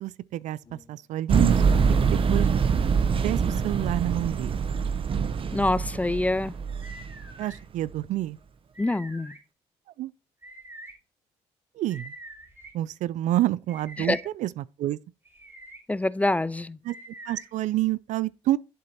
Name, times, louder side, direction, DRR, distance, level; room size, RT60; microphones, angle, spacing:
voice 1, 0.0-2.5 3.2-4.6 7.4-8.4 10.0-10.1 11.8-12.1 12.7-15.0 16.8-16.9 17.3-18.6, right 14 dB, 70° right, 0.4 m, -28 dB
sound 1, 0.6-1.0 1.3-4.4, left 4 dB, 50° left, 3.2 m, -55 dB
sound 2, 1.3-7.3 7.9-8.0, right 5 dB, 45° right, 0.8 m, -24 dB
voice 2, 5.5-6.5 8.8-9.3 14.0-14.2 15.9-16.8, left 2 dB, 10° left, 0.3 m, -25 dB
sound 3, 6.8-7.6 8.7-9.4 10.4-10.9 11.9-12.7 13.7-14.2 15.3-15.8 16.9-17.5, right 1 dB, 20° right, 3.1 m, -45 dB
11.5 x 3.8 x 4.2 m
supercardioid pair, 70°, 13 cm